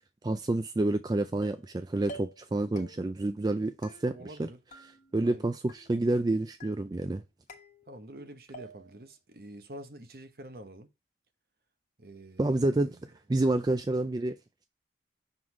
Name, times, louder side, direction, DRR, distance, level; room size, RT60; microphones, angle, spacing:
voice 1, 0.2-4.5 5.1-7.2 12.4-14.3, right 2 dB, 25° right, 0.3 m, -29 dB
sound 1, 1.4-1.7 2.1-2.5 2.8-3.3 3.8-4.4 4.7-5.4 5.7-6.2 6.6-7.1 7.5-8.2 8.5-9.1, right 1 dB, 45° left, 1.1 m, -50 dB
voice 2, 4.0-4.6 5.2-5.5 7.9-10.9 12.0-13.1, right 1 dB, 55° right, 0.9 m, -47 dB
6.2 x 3.8 x 4.8 m
head